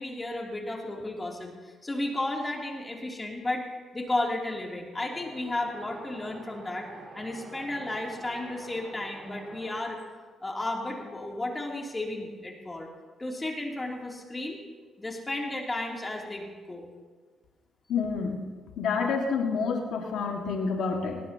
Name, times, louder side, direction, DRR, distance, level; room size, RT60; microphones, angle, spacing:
voice 1, 0.0-3.7 3.9-6.9 7.1-10.0 10.4-12.9 13.2-14.6 15.0-16.9, left 2 dB, 20° left, -1 dB, 2.9 m, -33 dB
Wind, 5.1-9.7, right 2 dB, 60° right, 5.5 m, -47 dB
voice 2, 17.9-18.4 18.8-21.2, left 5 dB, 80° left, 0 dB, 1.9 m, -28 dB
19.5 x 17.5 x 2.9 m, 1.4 s
cardioid pair, 90°, 0 cm